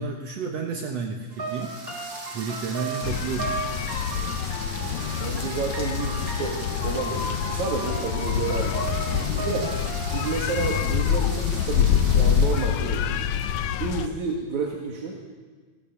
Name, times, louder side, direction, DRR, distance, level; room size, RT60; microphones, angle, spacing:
voice 1, 0.0-1.8 2.3-3.5, right 5 dB, 65° right, 2 dB, 2.4 m, -31 dB
sound 1, 1.3-10.4, right 4 dB, 20° right, 3.7 m, -36 dB
sound 2, 1.3-13.0, right 3 dB, 45° right, 3.1 m, -40 dB
sound 3, 3.0-14.1, left 9 dB, 75° left, 2.1 m, -26 dB
voice 2, 4.8-9.8 10.1-13.2 13.8-15.2, right 4 dB, 85° right, 0 dB, 3.3 m, -31 dB
26.0 x 15.0 x 7.2 m, 1.4 s
omnidirectional pair, 3.3 m